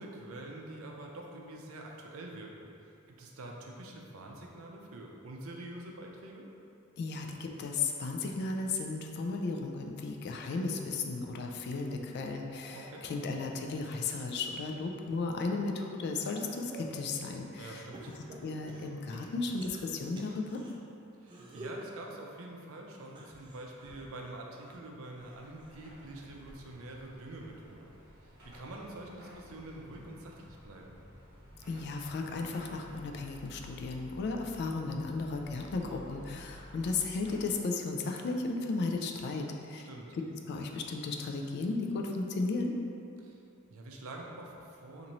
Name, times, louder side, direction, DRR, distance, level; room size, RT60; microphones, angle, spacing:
voice 1, 0.0-6.5 12.7-13.1 17.6-18.1 21.2-27.9 28.2-31.0 39.7-40.2 43.2-43.4 43.7-45.1, right 2 dB, 80° right, 0 dB, 0.5 m, -46 dB
voice 2, 7.0-17.8 18.4-20.6 31.7-39.9 40.1-42.7, left 3 dB, 55° left, 2 dB, 0.3 m, -35 dB
sound 1, 12.3-14.6 15.1-17.1 17.9-20.7 21.2-21.9 23.0-25.9 26.3-26.7 27.9-28.0, right 1 dB, 25° right, 0.4 m, -51 dB
Car passing by / Traffic noise roadway noise / Engine, 25.2-37.8, equal, 50° right, 1.0 m, -53 dB
2.9 x 2.6 x 4.0 m, 2.7 s
head